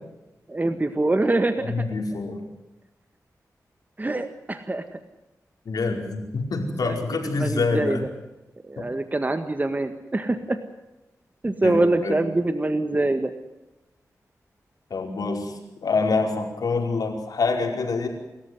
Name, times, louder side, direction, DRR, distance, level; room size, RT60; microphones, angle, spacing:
voice 1, 0.5-1.9 4.0-4.8 6.8-7.0 7.3-8.1 8.6-10.6 11.4-13.3, right 2 dB, 25° right, 8 dB, 1.8 m, -24 dB
voice 2, 1.6-2.4 5.6-8.0 11.6-12.2 14.9-15.5 15.8-18.1, left 4 dB, 85° left, 3 dB, 5.1 m, -26 dB
29.5 x 14.0 x 9.6 m, 0.98 s
cardioid pair, 65°, 6 cm